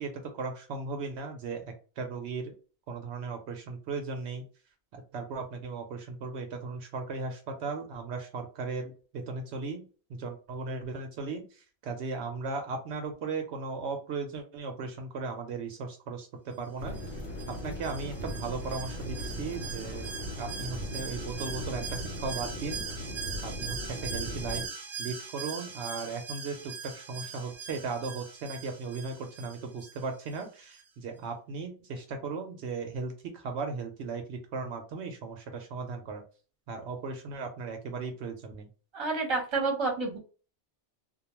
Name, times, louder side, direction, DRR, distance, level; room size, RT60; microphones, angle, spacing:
voice 1, 0.0-1.6 2.0-2.5 2.9-4.4 4.9-9.8 10.1-17.0 17.6-23.1 23.4-24.6 25.0-36.2 36.7-38.7, right 4 dB, 75° right, 4 dB, 0.8 m, -37 dB
sound 1, 16.8-24.7, equal, 70° left, 1.0 m, -38 dB
Alarm, 16.9-30.4 30.7-30.8, right 6 dB, 45° right, 0.4 m, -41 dB
voice 2, 38.9-40.2, right 3 dB, 25° right, 0 dB, 0.8 m, -29 dB
2.2 x 2.2 x 3.0 m, 0.37 s
omnidirectional pair, 1.2 m